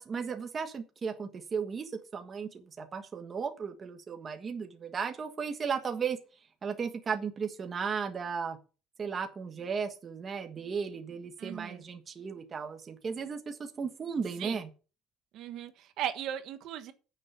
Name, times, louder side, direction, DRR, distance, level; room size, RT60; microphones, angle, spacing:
voice 1, 0.0-6.2 6.6-8.6 9.0-14.7, right 6 dB, 30° right, 6 dB, 1.4 m, -35 dB
voice 2, 11.4-11.8 14.4-14.6 15.3-16.9, right 10 dB, 65° right, 9 dB, 1.4 m, -37 dB
9.6 x 7.0 x 7.1 m, 0.34 s
cardioid pair, 155°, 0 cm